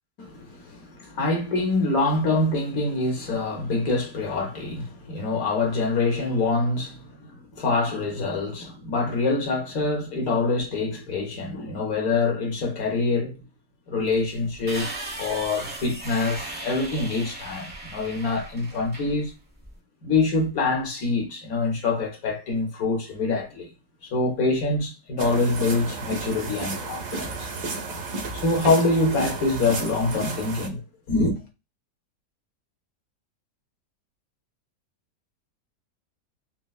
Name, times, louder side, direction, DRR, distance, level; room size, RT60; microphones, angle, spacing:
voice 1, 0.2-13.4 13.9-14.9 15.1-19.3 20.0-23.7 24.1-27.6 28.3-30.8 31.1-31.3, left 3 dB, 65° left, 1.2 m, -25 dB
sound 1, 14.1-19.7, right 2 dB, 10° right, 0.7 m, -37 dB
sound 2, 25.2-30.7, right 3 dB, 85° right, 1.6 m, -33 dB
4.1 x 2.1 x 2.3 m
omnidirectional pair, 1.8 m